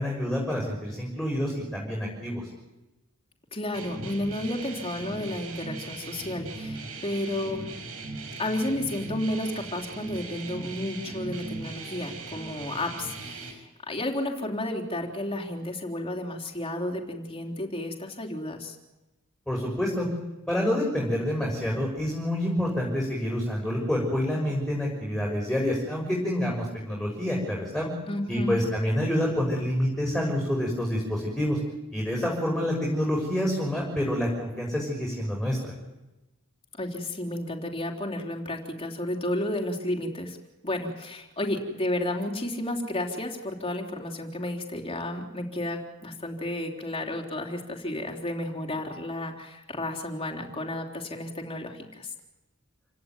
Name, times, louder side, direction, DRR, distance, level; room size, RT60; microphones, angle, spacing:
voice 1, 0.0-2.4 19.5-20.1 20.5-27.9 28.3-31.6 31.9-35.6, left 1 dB, 5° left, -2 dB, 6.3 m, -27 dB
voice 2, 3.5-7.7 8.4-18.8 28.1-28.6 36.7-40.4 40.6-52.1, left 1 dB, 25° left, 2 dB, 3.8 m, -32 dB
sound 1, 3.7-13.5, right 3 dB, 80° right, 6.0 m, -39 dB
29.0 x 17.5 x 9.4 m, 1.0 s
head